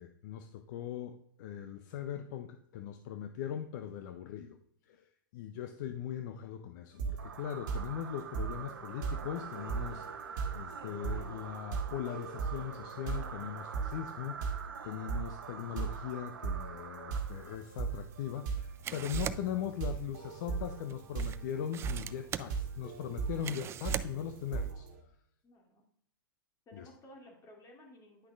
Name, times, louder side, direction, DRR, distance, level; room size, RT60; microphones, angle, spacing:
voice 1, 0.0-4.6 4.9-24.9 26.7-26.9, left 9 dB, 55° left, 8 dB, 0.5 m, -40 dB
sound 1, 7.0-7.3 7.7-25.0, right 6 dB, 55° right, 1.5 m, -38 dB
sound 2, 7.2-17.9, right 6 dB, 80° right, 0.8 m, -46 dB
sound 3, 17.2-24.7, right 10 dB, 20° right, 0.3 m, -44 dB
voice 2, 25.4-25.8 26.7-28.3, left 1 dB, 25° left, 0 dB, 2.4 m, -55 dB
9.8 x 6.1 x 2.4 m, 0.71 s
hypercardioid pair, 105°, 12 cm